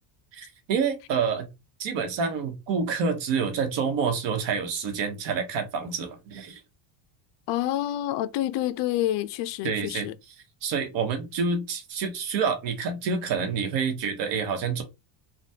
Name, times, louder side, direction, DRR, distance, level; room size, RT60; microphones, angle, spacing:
voice 1, 0.3-1.5 1.8-6.6 9.6-10.3 10.6-14.8, right 5 dB, 60° right, 1.0 m, -28 dB
voice 2, 7.5-10.1, left 13 dB, 60° left, 0.5 m, -28 dB
3.4 x 2.2 x 2.7 m
cardioid pair, 150°, 49 cm